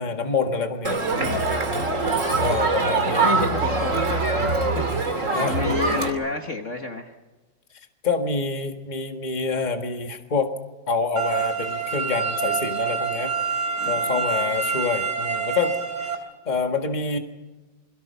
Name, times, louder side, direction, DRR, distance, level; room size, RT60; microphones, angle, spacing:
voice 1, 0.0-1.4 2.1-3.3 5.3-5.6 8.0-10.5 10.9-13.3 13.9-15.7 16.4-17.2, left 4 dB, 25° left, 5 dB, 1.7 m, -26 dB
Crowd, 0.8-6.1, right 3 dB, 40° right, 3.1 m, -23 dB
voice 2, 2.0-2.6 3.2-4.2 4.7-7.1 13.8-14.2, left 4 dB, 40° left, 4 dB, 1.7 m, -31 dB
sound 1, 11.2-16.2, right 6 dB, 60° right, 3.6 m, -26 dB
28.0 x 22.5 x 5.7 m, 1.2 s
omnidirectional pair, 2.0 m